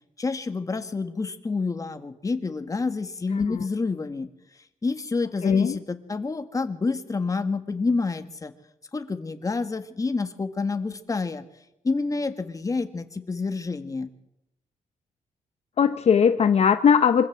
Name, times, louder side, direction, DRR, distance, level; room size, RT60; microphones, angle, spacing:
voice 1, 0.2-4.3 4.8-8.5 8.9-11.4 11.8-14.1, left 4 dB, 25° left, 8 dB, 1.8 m, -28 dB
voice 2, 5.4-5.8 15.8-17.3, left 7 dB, 55° left, 9 dB, 0.9 m, -19 dB
25.0 x 15.5 x 7.5 m, 0.85 s
cardioid pair, 115°, 13 cm